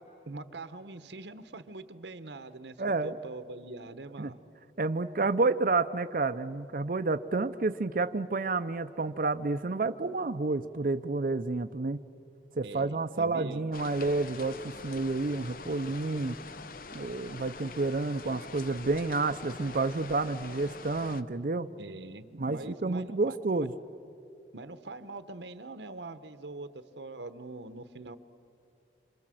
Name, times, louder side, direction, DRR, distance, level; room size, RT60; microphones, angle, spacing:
voice 1, 0.0-2.8 3.0-4.3 12.6-13.6 21.8-23.7 24.5-28.2, right 2 dB, 85° right, 11 dB, 1.0 m, -43 dB
voice 2, 2.8-3.2 4.2-4.3 4.8-12.0 12.6-16.4 16.9-21.7 22.4-23.7, right 3 dB, 50° right, 8 dB, 0.6 m, -30 dB
sound 1, 13.7-21.2, left 4 dB, 50° left, 0.8 m, -44 dB
27.5 x 27.0 x 7.7 m, 2.7 s
head